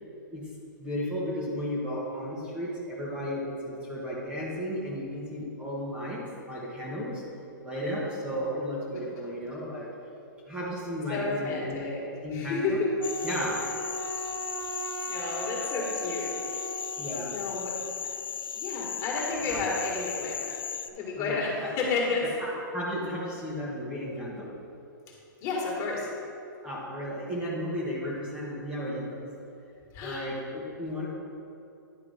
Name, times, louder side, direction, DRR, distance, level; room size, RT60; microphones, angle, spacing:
voice 1, 0.8-7.2 7.6-9.9 10.5-11.8 12.2-12.8 13.2-13.7 17.0-17.4 19.2-19.6 21.2-21.7 22.4-24.5 26.6-29.3 30.0-31.1, equal, 10° right, -6 dB, 1.1 m, -34 dB
voice 2, 11.1-12.0 12.3-12.9 14.2-14.3 15.1-16.6 16.9-17.8 18.5-20.6 20.9-22.3 25.4-26.1 29.9-30.3, left 3 dB, 30° left, -3 dB, 1.8 m, -31 dB
sound 1, 13.0-20.9, left 8 dB, 85° left, 0.4 m, -36 dB
Wind instrument woodwind instrument, 13.0-17.2, right 5 dB, 85° right, 0.4 m, -38 dB
10.5 x 3.6 x 5.0 m, 2.7 s
hypercardioid pair, 140°, 11 cm